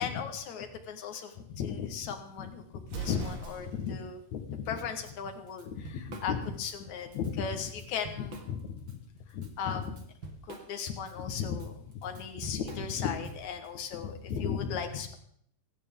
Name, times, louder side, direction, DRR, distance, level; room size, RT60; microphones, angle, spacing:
voice 1, 0.0-9.0 9.3-10.1 10.4-15.1, left 7 dB, 60° left, 5 dB, 2.1 m, -35 dB
Explosion, 2.8-4.0, right 5 dB, 70° right, 4.2 m, -41 dB
Drum kit / Drum, 5.0-5.1 5.5-6.8 7.1-7.3 7.7-8.9 9.3-13.7, right 2 dB, 45° right, 1.6 m, -46 dB
24.5 x 11.0 x 3.7 m, 0.64 s
omnidirectional pair, 4.9 m